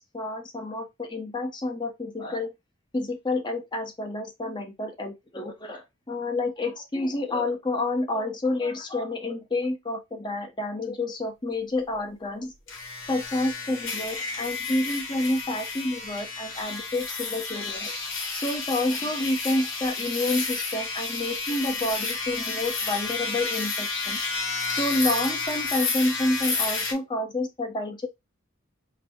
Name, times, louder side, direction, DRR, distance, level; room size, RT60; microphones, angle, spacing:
voice 1, 0.0-2.5 2.9-12.5 13.1-18.0 18.4-24.2 24.7-28.1, left 2 dB, 20° left, 0.7 m, -29 dB
sound 1, 12.7-26.9, left 4 dB, 60° left, 1.8 m, -31 dB
3.9 x 2.0 x 4.3 m
head